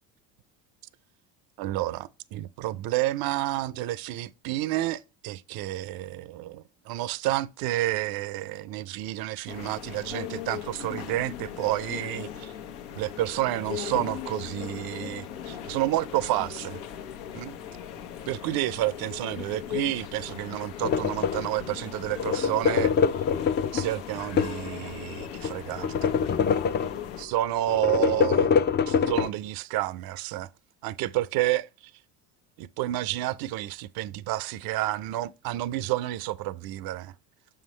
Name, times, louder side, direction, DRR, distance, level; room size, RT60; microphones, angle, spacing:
voice 1, 1.6-12.5 13.0-16.8 17.3-17.6 18.3-22.9 23.7-26.1 27.2-28.5 28.9-30.5 30.8-31.7 32.6-37.1, right 15 dB, 60° right, 0.5 m, -30 dB
sound 1, 9.5-27.3, left 10 dB, 85° left, 1.1 m, -38 dB
sound 2, 20.8-21.6 22.1-24.7 25.2-27.2 27.7-29.3, left 6 dB, 25° left, 0.4 m, -25 dB
6.7 x 5.7 x 3.2 m
supercardioid pair, 95°, 41 cm